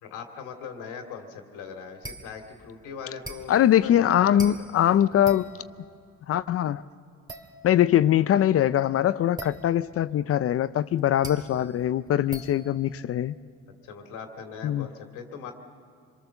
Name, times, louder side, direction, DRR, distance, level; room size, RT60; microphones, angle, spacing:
voice 1, 0.0-4.6 11.6-11.7 13.8-15.5, left 6 dB, 85° left, 2.4 m, -40 dB
sound 1, 2.0-2.5 3.2-5.9 7.3-8.0 9.4-10.1 11.0-13.4, right 2 dB, 15° right, 2.2 m, -42 dB
voice 2, 3.5-5.5 6.3-6.8 7.6-13.3 14.6-14.9, left 11 dB, 50° left, 0.5 m, -22 dB
26.0 x 22.5 x 7.0 m
cardioid pair, 95°, 30 cm